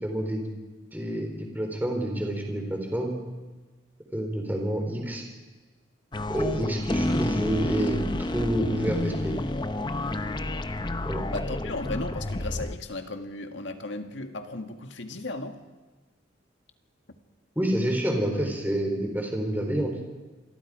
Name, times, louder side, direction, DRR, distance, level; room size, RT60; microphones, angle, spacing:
voice 1, 0.0-0.5 0.9-3.2 4.1-5.3 6.3-8.0 8.3-9.3 11.0-11.2 17.6-19.9, right 1 dB, 10° right, 2 dB, 3.8 m, -28 dB
sound 1, 6.1-12.8, left 1 dB, 25° left, 0.8 m, -30 dB
voice 2, 11.3-15.6, left 2 dB, 85° left, 6 dB, 1.8 m, -35 dB
27.5 x 22.5 x 5.0 m, 1.3 s
head